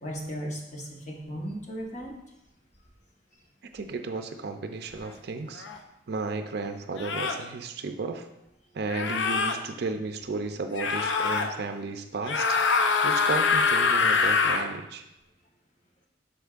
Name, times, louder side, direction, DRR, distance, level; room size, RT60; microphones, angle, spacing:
voice 1, 0.0-2.1, equal, 40° left, -1 dB, 1.2 m, -36 dB
voice 2, 3.7-5.7 6.1-8.3 8.7-12.6 13.0-15.1, right 3 dB, 55° right, 6 dB, 0.5 m, -34 dB
sound 1, 5.6-5.8 7.0-7.4 8.9-9.6 10.7-11.5 12.2-14.7, left 5 dB, 75° left, 0.6 m, -24 dB
7.9 x 5.9 x 2.5 m, 0.89 s
head